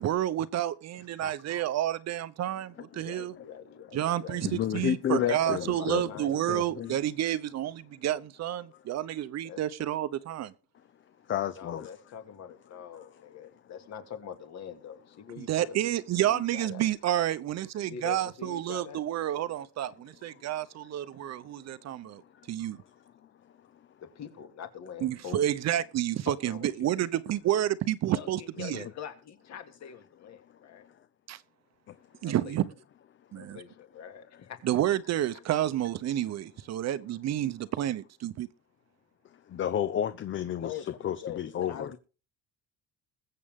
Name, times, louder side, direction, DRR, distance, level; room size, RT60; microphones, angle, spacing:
voice 1, 0.0-3.3 3.9-10.5 15.4-22.2 22.5-22.8 25.0-28.8 31.3-31.4 32.2-32.7 33.3-33.6 34.6-38.5, right 12 dB, 50° right, 0.9 m, -30 dB
voice 2, 0.9-1.6 2.9-4.4 5.1-6.7 9.4-9.6 11.6-15.8 16.2-16.9 17.9-19.0 22.6-22.7 24.0-25.5 26.4-26.9 28.1-30.9 32.2-32.6 33.4-34.6 40.6-40.9 41.2-42.0, left 8 dB, 50° left, 2.4 m, -43 dB
voice 3, 4.4-6.1 6.5-7.0 8.7-8.8 11.2-11.9 12.9-13.2 20.4-20.5 21.1-21.8 22.0-22.5 22.8-23.9 28.7-28.9 30.4-31.1 31.9-32.2 33.4-33.5 39.2-41.9, left 10 dB, 35° left, 0.7 m, -34 dB
21.5 x 7.6 x 3.7 m
cardioid pair, 145°, 34 cm